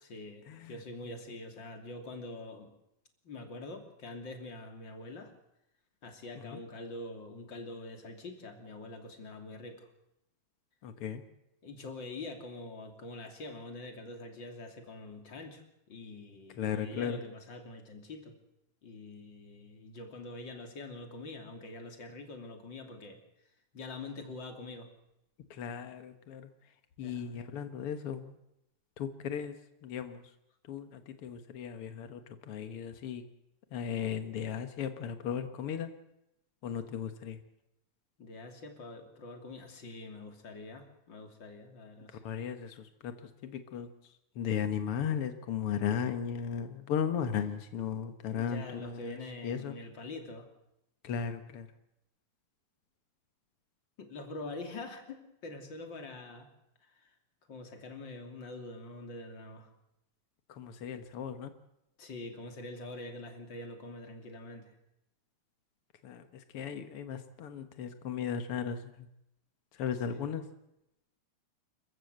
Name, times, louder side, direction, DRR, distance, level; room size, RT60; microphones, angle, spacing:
voice 1, 0.0-2.7 3.2-5.3 6.0-9.9 11.6-18.4 18.8-23.2 23.7-24.9 27.0-27.4 38.2-42.2 47.1-47.3 48.3-50.5 54.0-56.5 56.8-57.1 57.5-59.7 62.0-64.8 70.1-70.4, left 2 dB, 30° left, 5 dB, 2.9 m, -45 dB
voice 2, 10.8-11.2 16.6-17.2 25.5-26.5 27.0-28.4 29.0-29.5 29.8-30.2 30.7-33.2 33.7-35.9 36.6-37.4 42.2-43.1 43.4-43.9 44.3-49.2 49.4-49.8 51.0-51.7 60.5-61.5 66.0-69.1 69.8-70.4, left 8 dB, 85° left, 8 dB, 1.2 m, -36 dB
28.0 x 15.0 x 8.0 m, 0.85 s
omnidirectional pair, 4.6 m